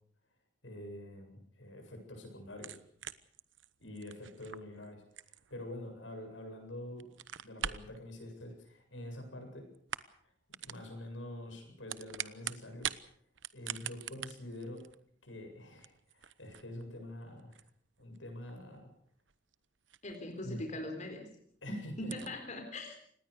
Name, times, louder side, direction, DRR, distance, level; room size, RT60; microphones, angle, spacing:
voice 1, 0.6-2.8 3.8-5.0 5.5-7.0 7.3-9.7 10.6-12.9 13.5-14.8 15.2-17.6 18.0-18.9 20.4-20.6 21.6-22.1, left 1 dB, 85° left, 4 dB, 7.9 m, -46 dB
sound 1, 2.5-6.5 6.9-8.0 9.0-9.5 9.7-10.2 10.5-10.8 11.6-13.0 13.3-20.4 20.7-20.8 21.3-21.4 21.6-21.7 22.0-22.3, right 9 dB, 75° right, 1.0 m, -44 dB
voice 2, 20.0-21.3 22.0-23.0, left 1 dB, 40° left, 4 dB, 3.9 m, -41 dB
26.0 x 19.5 x 6.7 m, 0.62 s
head